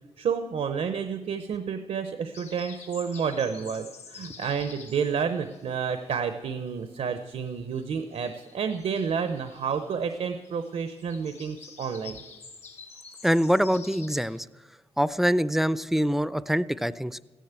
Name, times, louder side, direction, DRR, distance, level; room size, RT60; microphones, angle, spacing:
voice 1, 0.2-12.2, right 6 dB, 85° right, 8 dB, 0.7 m, -30 dB
sound 1, 2.3-6.7 6.9-14.4, left 5 dB, 85° left, 2.1 m, -49 dB
voice 2, 13.2-14.5 15.0-17.2, equal, 5° right, 17 dB, 0.4 m, -24 dB
14.5 x 10.0 x 8.1 m, 1.2 s
wide cardioid pair, 110°, 11 cm